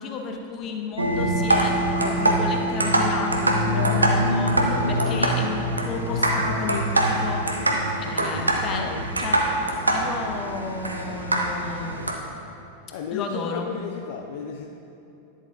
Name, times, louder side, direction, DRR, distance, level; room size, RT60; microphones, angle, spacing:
voice 1, 0.0-7.7 8.0-8.9 9.2-9.4 9.9-12.2 13.1-13.7, left 4 dB, 35° left, 3 dB, 0.8 m, -33 dB
sound 1, 1.0-12.1, right 1 dB, 80° right, 0.6 m, -23 dB
voice 2, 4.7-5.0 8.6-9.1 12.9-14.7, left 7 dB, 55° left, 3 dB, 0.4 m, -34 dB
10.0 x 7.3 x 2.6 m, 2.9 s
figure-of-eight pair, 90°, 0 cm